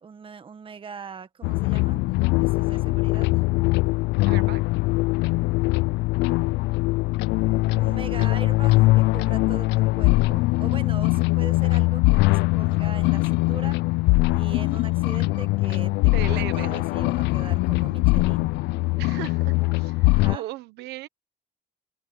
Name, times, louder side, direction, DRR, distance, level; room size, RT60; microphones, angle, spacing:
voice 1, 0.0-2.0 2.4-3.3 7.7-9.7 10.0-13.8 14.3-18.6 20.0-20.5, right 6 dB, 30° right, 1.6 m, -41 dB
sound 1, 1.4-20.4, left 22 dB, 90° left, 0.5 m, -22 dB
voice 2, 4.3-4.6 16.1-16.7 19.0-21.1, right 17 dB, 85° right, 1.1 m, -36 dB
open air
cardioid pair, 110°, 17 cm